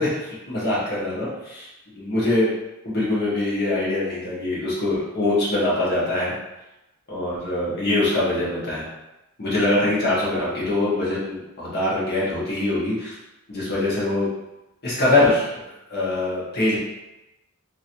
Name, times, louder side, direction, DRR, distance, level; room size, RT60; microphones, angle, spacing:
voice 1, 0.0-1.7 1.9-2.5 2.8-6.3 7.1-8.9 9.4-13.1 13.5-14.3 14.8-16.8, left 2 dB, 50° left, -7 dB, 1.2 m, -23 dB
3.0 x 2.8 x 2.6 m, 0.97 s
head